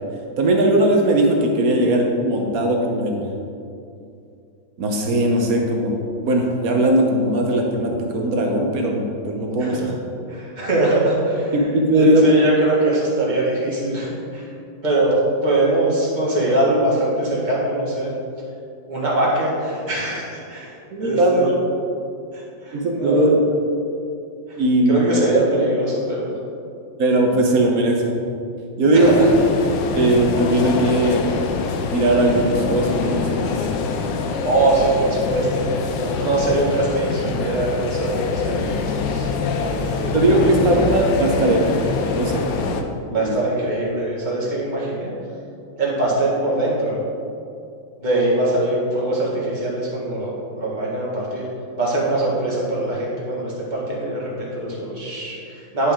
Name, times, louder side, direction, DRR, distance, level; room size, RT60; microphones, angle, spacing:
voice 1, 0.4-3.2 4.8-9.8 11.7-12.3 20.9-21.6 22.7-23.3 24.6-25.0 27.0-28.1 28.8-29.1 29.9-31.2 31.9-33.5 40.1-41.6 42.1-42.4 43.1-43.3, right 1 dB, 55° right, 1 dB, 1.2 m, -18 dB
voice 2, 9.6-9.9 10.3-11.5 11.9-14.5 14.8-18.2 18.9-20.7 21.0-21.6 22.3-23.3 24.5-24.6 24.9-26.3 28.9-29.3 34.4-35.7 36.0-39.3 39.6-40.1 40.4-40.5 42.5-42.6 43.1-45.1 45.8-47.0 48.0-51.5 51.8-55.9, right 2 dB, 25° right, -5 dB, 1.6 m, -22 dB
sound 1, 29.0-42.8, left 4 dB, 75° left, 1.2 m, -24 dB
9.8 x 5.6 x 3.7 m, 2.5 s
omnidirectional pair, 2.2 m